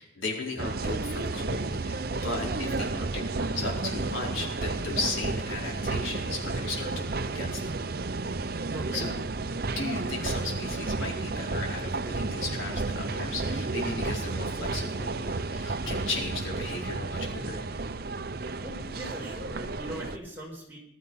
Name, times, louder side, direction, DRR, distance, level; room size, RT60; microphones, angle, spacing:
voice 1, 0.0-7.7 8.9-9.1 9.7-17.7, left 3 dB, 85° left, -1 dB, 4.5 m, -36 dB
sound 1, 0.6-20.2, right 3 dB, 50° right, 0.7 m, -32 dB
voice 2, 8.7-9.0 18.6-20.8, equal, 10° right, -3 dB, 4.7 m, -40 dB
20.0 x 12.5 x 5.6 m, 0.77 s
head